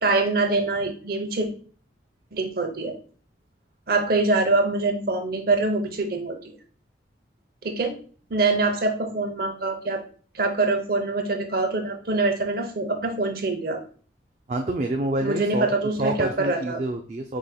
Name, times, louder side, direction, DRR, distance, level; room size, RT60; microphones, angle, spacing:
voice 1, 0.0-1.5 2.3-2.9 3.9-6.3 7.6-8.0 8.3-10.0 10.3-13.8 15.2-16.8, right 3 dB, 55° right, 5 dB, 0.7 m, -24 dB
voice 2, 14.5-15.7 16.0-17.4, right 2 dB, 35° right, 3 dB, 0.3 m, -27 dB
4.8 x 4.1 x 2.3 m, 0.42 s
head